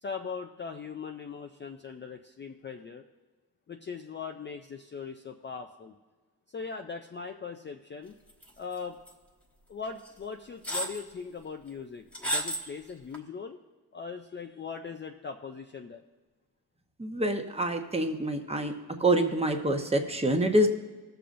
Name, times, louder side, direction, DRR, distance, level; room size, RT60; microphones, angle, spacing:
voice 1, 0.0-3.0 3.7-5.9 6.5-8.1 8.6-9.0 9.7-13.6 13.9-16.0, left 5 dB, 25° left, 4 dB, 0.4 m, -40 dB
sound 1, 8.4-8.8 9.1-9.2 10.1-10.2 10.6-11.0 12.1-12.7 13.1-13.2, right 1 dB, 5° left, 1.2 m, -31 dB
voice 2, 17.0-18.7 19.0-20.7, right 1 dB, 15° right, 4 dB, 0.9 m, -26 dB
18.5 x 6.8 x 2.6 m, 1.3 s
cardioid pair, 110°, 42 cm